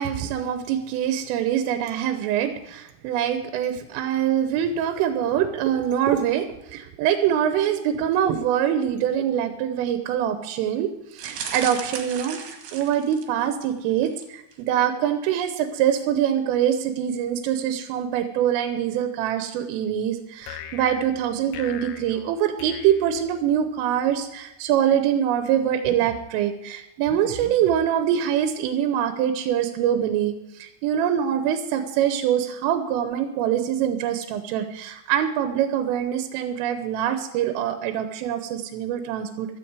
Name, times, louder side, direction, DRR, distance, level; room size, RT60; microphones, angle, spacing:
voice 1, 0.0-12.4 12.7-39.6, right 9 dB, 85° right, 8 dB, 3.4 m, -24 dB
sound 1, 11.2-13.5 14.0-14.3 14.5-14.6, right 7 dB, 60° right, 3.1 m, -35 dB
sound 2, 20.4-23.8, left 9 dB, 75° left, 2.7 m, -41 dB
15.0 x 13.0 x 4.7 m, 0.87 s
omnidirectional pair, 5.7 m